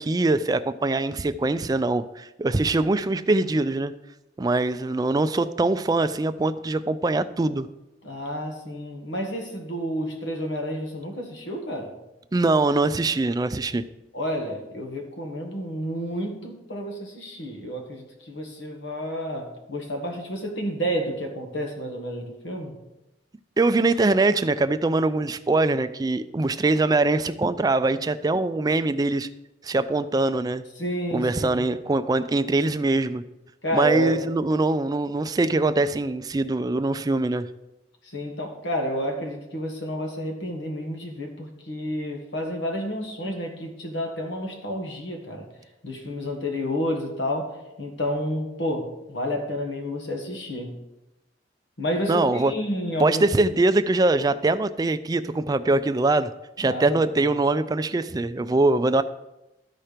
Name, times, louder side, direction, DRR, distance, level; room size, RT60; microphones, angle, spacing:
voice 1, 0.0-3.9 4.4-7.7 12.3-13.8 23.6-29.3 29.6-30.6 31.1-33.2 33.7-37.5 52.1-52.5 53.0-56.3 56.6-59.0, right 2 dB, 20° right, 0.3 m, -23 dB
voice 2, 8.0-12.0 14.1-22.8 30.8-31.7 33.6-34.2 38.0-45.5 45.8-50.7 51.8-53.2 56.6-56.9 57.1-57.2, equal, 80° left, 1.6 m, -30 dB
13.0 x 4.4 x 5.0 m
head